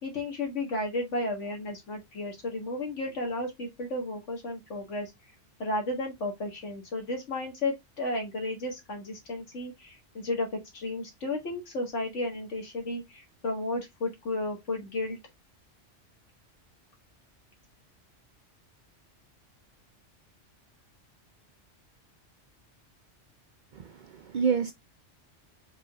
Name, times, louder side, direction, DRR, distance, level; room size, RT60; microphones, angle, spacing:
voice 1, 0.0-5.1 5.6-15.2, left 2 dB, 80° left, 1.9 m, -33 dB
voice 2, 23.7-24.7, right 6 dB, 60° right, 0.5 m, -28 dB
4.9 x 3.7 x 2.3 m
omnidirectional pair, 1.2 m